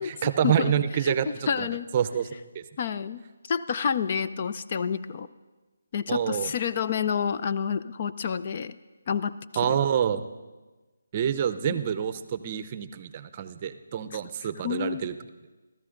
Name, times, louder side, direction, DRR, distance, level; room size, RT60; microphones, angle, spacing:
voice 1, 0.0-1.7 1.9-2.3 2.5-2.6 6.1-6.5 9.6-10.3 11.1-15.1, right 9 dB, 30° right, 12 dB, 0.6 m, -27 dB
voice 2, 1.0-1.9 2.8-5.3 5.9-8.8 9.1-9.3 9.6-9.8 14.6-15.1, left 7 dB, 40° left, 13 dB, 0.4 m, -29 dB
27.5 x 13.5 x 2.6 m, 1.2 s
figure-of-eight pair, 155°, 0 cm